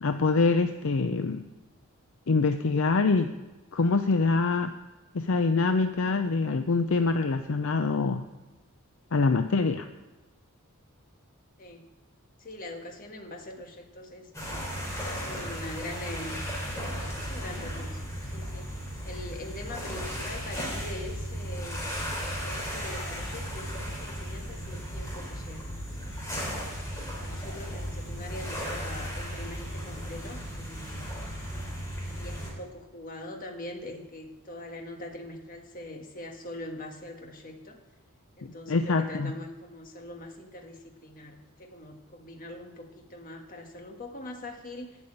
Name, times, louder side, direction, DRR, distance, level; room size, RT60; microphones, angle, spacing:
voice 1, 0.0-1.5 2.3-3.3 3.7-4.7 5.1-8.3 9.1-9.9 38.4-39.3, left 4 dB, 60° left, 8 dB, 0.5 m, -25 dB
voice 2, 12.4-14.3 15.0-16.5 16.7-18.7 19.0-21.9 22.4-25.7 26.0-26.6 27.2-31.1 32.1-37.8 38.4-45.0, left 1 dB, 40° left, 3 dB, 1.5 m, -42 dB
sound 1, 14.3-32.5, equal, 15° left, 3.3 m, -35 dB
12.0 x 5.5 x 8.8 m, 1.2 s
head